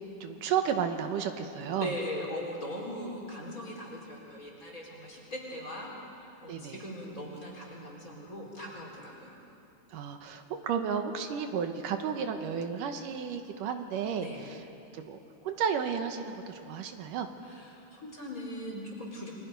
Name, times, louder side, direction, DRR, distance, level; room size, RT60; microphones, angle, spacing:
voice 1, 0.2-1.9 6.5-6.8 9.9-14.6 14.9-17.3, right 7 dB, 80° right, 6 dB, 2.8 m, -33 dB
voice 2, 1.5-5.9 6.2-9.4 14.2-14.4 17.4-19.3, left 1 dB, 25° left, -2 dB, 4.0 m, -40 dB
28.5 x 24.5 x 5.3 m, 2.7 s
omnidirectional pair, 3.8 m